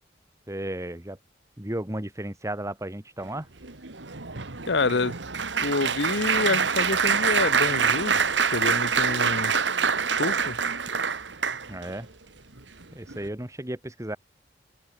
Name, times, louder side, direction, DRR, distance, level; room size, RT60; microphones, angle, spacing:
voice 1, 0.5-1.2 1.6-3.5 11.7-12.1 12.9-14.2, right 1 dB, 15° right, 2.2 m, -34 dB
Applause, 3.6-11.9 12.6-12.8 13.1-13.3, right 6 dB, 85° right, 2.2 m, -25 dB
voice 2, 4.7-5.1 5.6-8.2 8.5-9.5 10.2-10.6, left 3 dB, 70° left, 1.0 m, -27 dB
open air
head